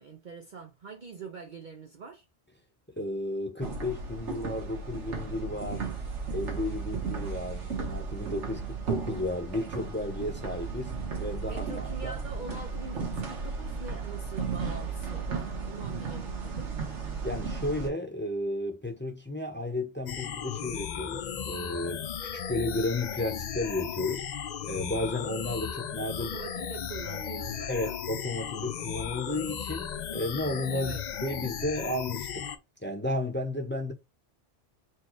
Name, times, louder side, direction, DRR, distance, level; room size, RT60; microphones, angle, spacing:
voice 1, 0.0-2.3 11.5-16.7 25.7-25.8 26.2-28.0 30.7-31.0, right 4 dB, 50° right, 0.6 m, -44 dB
voice 2, 3.0-5.9 6.3-12.2 17.2-22.1 22.3-24.3 24.6-26.4 27.7-30.9 31.2-32.6 32.8-33.9, left 1 dB, 10° left, 0.8 m, -33 dB
sound 1, 3.6-17.9, right 5 dB, 85° right, 1.5 m, -35 dB
sound 2, 20.1-32.6, left 8 dB, 60° left, 0.4 m, -36 dB
4.5 x 2.3 x 4.5 m
omnidirectional pair, 1.2 m